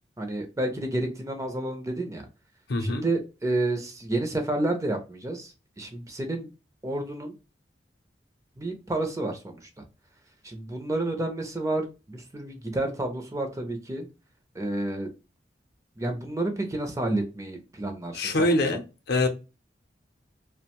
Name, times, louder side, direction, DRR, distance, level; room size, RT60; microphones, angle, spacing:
voice 1, 0.2-2.3 2.8-6.5 6.8-7.3 8.6-9.6 10.4-14.1 14.5-15.1 16.0-18.8, right 2 dB, 15° right, 0.5 m, -30 dB
voice 2, 2.7-3.0 18.1-18.8 19.1-19.3, left 2 dB, 60° left, 0.5 m, -24 dB
2.4 x 2.1 x 2.8 m
head